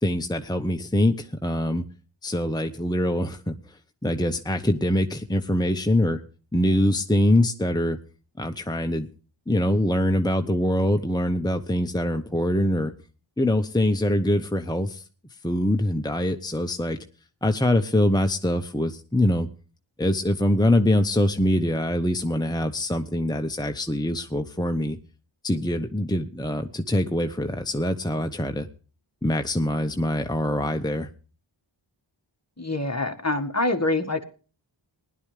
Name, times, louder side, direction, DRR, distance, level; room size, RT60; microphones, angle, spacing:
voice 1, 0.0-1.8 2.2-6.2 6.5-8.0 8.4-9.1 9.5-12.9 13.4-15.0 15.4-17.0 17.4-19.5 20.0-25.0 25.4-28.7 29.2-31.1, left 1 dB, 10° left, 6 dB, 1.0 m, -24 dB
voice 2, 32.6-34.2, left 2 dB, 35° left, 6 dB, 1.8 m, -25 dB
20.0 x 11.5 x 3.3 m, 0.38 s
wide cardioid pair, 45°, 47 cm